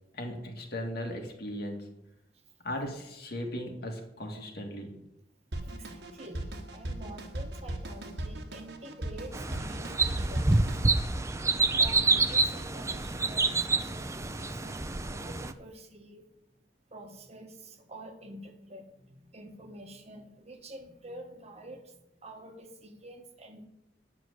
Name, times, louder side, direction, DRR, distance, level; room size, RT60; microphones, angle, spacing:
voice 1, 0.2-1.9 2.6-5.0, left 1 dB, 65° left, 2 dB, 2.3 m, -37 dB
Drum kit, 5.5-10.8, right 1 dB, 65° right, 1.3 m, -37 dB
voice 2, 5.6-6.4 6.7-10.7 11.8-16.2 16.9-18.9 19.2-21.8 22.2-23.7, right 1 dB, 40° right, 5 dB, 1.3 m, -47 dB
sound 1, 9.3-15.5, right 3 dB, 15° right, 0.5 m, -28 dB
9.7 x 6.2 x 8.0 m, 0.87 s
head